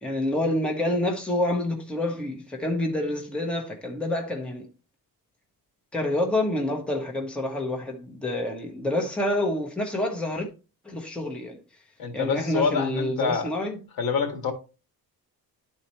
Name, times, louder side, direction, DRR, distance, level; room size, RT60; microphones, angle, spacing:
voice 1, 0.0-4.7 5.9-10.5 10.8-11.6 12.1-13.8, left 1 dB, 5° left, 1.0 m, -28 dB
voice 2, 12.0-13.5 14.0-14.5, left 5 dB, 65° left, 1.8 m, -26 dB
11.5 x 4.3 x 3.0 m
cardioid pair, 145°, 39 cm